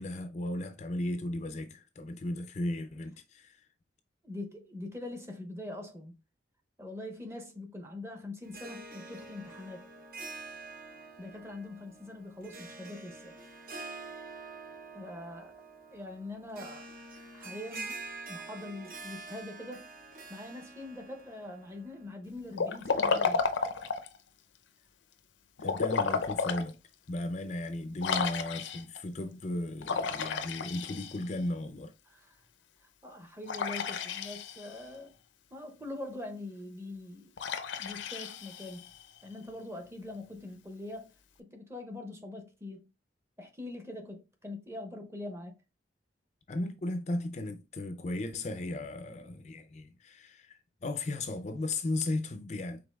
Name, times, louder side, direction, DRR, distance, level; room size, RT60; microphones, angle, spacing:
voice 1, 0.0-3.6 25.6-26.8 27.1-31.9 46.5-52.8, left 2 dB, 40° left, 0.4 m, -35 dB
voice 2, 4.2-6.2 6.8-9.9 10.9-13.3 14.3-14.4 14.9-15.6 15.9-16.9 17.3-19.9 20.3-23.5 32.0-32.4 32.8-35.1 35.5-37.3 37.8-38.9 39.2-41.1 41.4-42.9 43.4-45.6, left 2 dB, 15° right, 0.8 m, -43 dB
Harp, 8.4-22.2, right 3 dB, 50° right, 0.8 m, -46 dB
Liquid, 22.5-24.2 25.6-26.7 27.2-27.3 28.0-29.0 29.8-31.4 33.5-34.8 37.4-39.0, left 5 dB, 85° left, 0.6 m, -32 dB
5.2 x 3.7 x 2.3 m
head